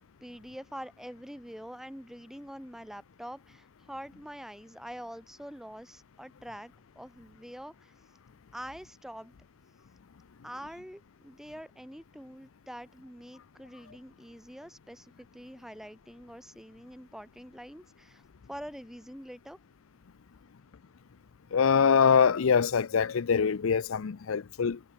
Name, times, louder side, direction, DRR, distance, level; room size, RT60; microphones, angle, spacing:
voice 1, 0.2-7.9 8.5-9.3 10.4-18.2 18.5-19.6, equal, ahead, 1.9 m, -45 dB
voice 2, 21.5-24.8, left 6 dB, 75° left, 0.5 m, -24 dB
head